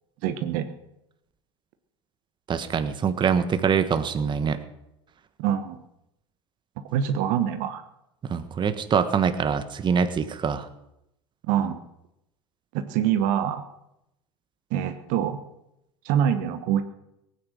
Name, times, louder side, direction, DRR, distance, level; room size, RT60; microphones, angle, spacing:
voice 1, 0.2-0.7 5.4-5.8 6.9-7.8 11.4-11.8 12.7-13.6 14.7-15.4 16.0-16.8, right 9 dB, 60° right, 9 dB, 1.2 m, -25 dB
voice 2, 2.5-4.6 8.2-10.7, right 6 dB, 30° right, 10 dB, 1.3 m, -24 dB
18.5 x 9.7 x 6.6 m, 0.84 s
hypercardioid pair, 80°, 15 cm